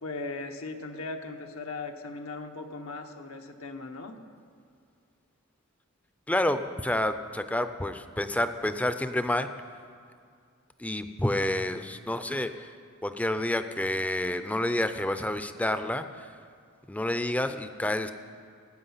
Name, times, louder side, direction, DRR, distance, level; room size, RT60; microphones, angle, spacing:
voice 1, 0.0-4.2, left 3 dB, 80° left, 4 dB, 1.0 m, -38 dB
voice 2, 6.3-9.5 10.8-12.7 13.0-16.3 16.9-18.1, left 1 dB, 5° left, 10 dB, 0.5 m, -29 dB
18.0 x 8.5 x 5.7 m, 2.3 s
head